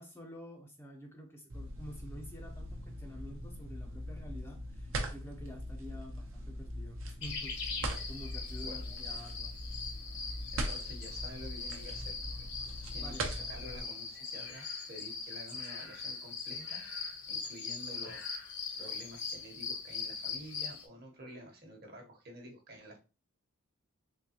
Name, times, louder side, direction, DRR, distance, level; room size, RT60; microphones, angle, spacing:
voice 1, 0.0-9.6 13.0-13.3, equal, 10° left, 1 dB, 0.5 m, -49 dB
sound 1, 1.5-13.8, right 1 dB, 65° right, 0.8 m, -41 dB
sound 2, 7.2-20.8, left 5 dB, 50° left, 0.9 m, -41 dB
voice 2, 10.2-12.5 12.9-18.2 18.7-23.0, equal, 45° right, 2 dB, 1.1 m, -50 dB
3.7 x 3.3 x 2.8 m, 0.31 s
head